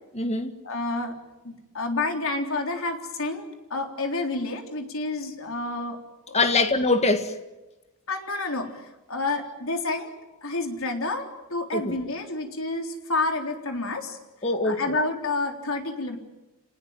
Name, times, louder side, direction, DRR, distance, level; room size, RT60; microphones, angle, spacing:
voice 1, 0.1-0.5 6.3-7.4 11.7-11.9 14.4-14.9, left 3 dB, 30° left, 2.0 m, -23 dB
voice 2, 0.6-1.2 1.4-6.0 6.3-6.6 8.1-10.1 10.4-14.2 14.6-16.2, left 2 dB, 70° left, 3.8 m, -29 dB
27.5 x 19.5 x 9.2 m
head